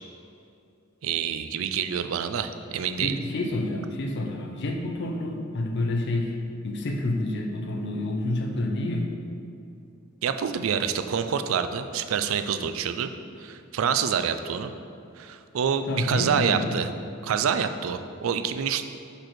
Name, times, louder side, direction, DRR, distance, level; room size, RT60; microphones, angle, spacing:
voice 1, 1.0-3.2 10.2-13.1 13.4-14.7 15.2-16.9 17.2-18.8, right 7 dB, 75° right, 9 dB, 0.4 m, -27 dB
voice 2, 3.0-9.2 15.9-16.8, left 1 dB, 55° left, 2 dB, 0.6 m, -28 dB
5.3 x 4.4 x 5.7 m, 2.5 s
head